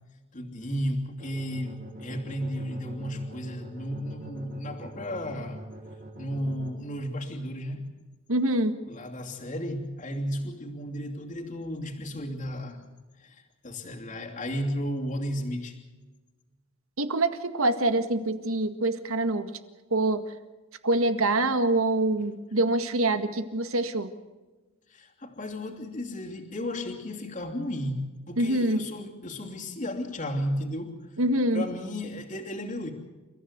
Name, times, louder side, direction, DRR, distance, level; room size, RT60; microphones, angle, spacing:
voice 1, 0.3-5.6 6.2-7.9 8.9-12.8 13.2-15.8 24.9-31.0 31.5-32.9, equal, 35° left, 1 dB, 2.9 m, -34 dB
sound 1, 1.2-6.7, right 1 dB, 45° right, 5.7 m, -43 dB
voice 2, 8.3-8.7 17.0-19.5 19.9-20.2 20.8-24.1 28.4-28.8 31.2-31.6, right 2 dB, 85° right, 9 dB, 1.9 m, -25 dB
29.5 x 15.0 x 8.1 m, 1.2 s
head